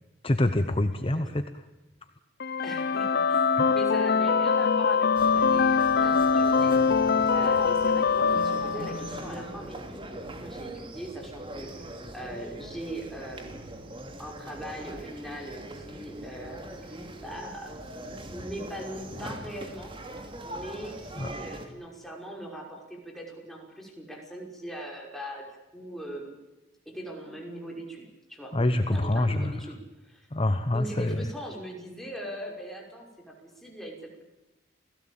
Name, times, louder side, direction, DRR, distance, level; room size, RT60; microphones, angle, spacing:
voice 1, 0.2-1.4 2.7-2.8 3.6-3.7 21.2-21.3 28.5-29.5 30.3-31.3, left 1 dB, 30° left, 9 dB, 1.0 m, -26 dB
sound 1, 2.4-9.4, left 5 dB, 55° left, 0.8 m, -23 dB
voice 2, 2.6-6.7 7.3-13.8 14.2-20.0 20.4-25.4 25.7-26.3 26.9-28.0 28.3-30.3 30.7-34.2, right 1 dB, ahead, 0 dB, 5.7 m, -41 dB
sound 2, 5.1-21.7, right 1 dB, 25° right, 2.7 m, -41 dB
29.0 x 17.0 x 8.8 m, 1.0 s
head